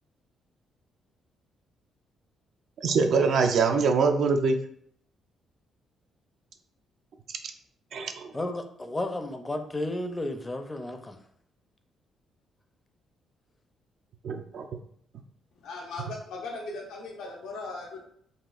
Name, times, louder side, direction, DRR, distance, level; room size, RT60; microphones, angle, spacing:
voice 1, 2.8-4.6 7.9-8.3 14.2-14.6, right 4 dB, 65° right, 6 dB, 0.3 m, -23 dB
voice 2, 8.3-11.2, left 1 dB, 20° left, 6 dB, 0.4 m, -33 dB
voice 3, 15.6-18.0, left 3 dB, 85° left, -1 dB, 0.6 m, -38 dB
4.0 x 2.4 x 2.4 m, 0.66 s
cardioid pair, 90°, 0 cm